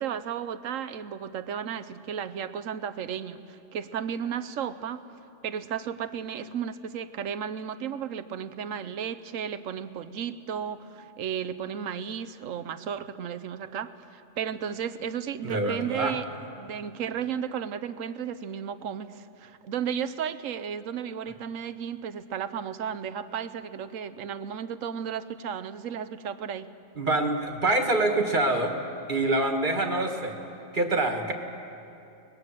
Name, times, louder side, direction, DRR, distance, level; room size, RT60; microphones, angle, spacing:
voice 1, 0.0-5.1 5.4-16.3 16.6-26.7, right 8 dB, 80° right, 13 dB, 1.2 m, -34 dB
voice 2, 15.4-16.2 27.0-28.7 29.1-30.4 30.7-31.3, right 2 dB, 40° right, 4 dB, 1.9 m, -25 dB
23.0 x 20.5 x 7.6 m, 2.8 s
omnidirectional pair, 1.3 m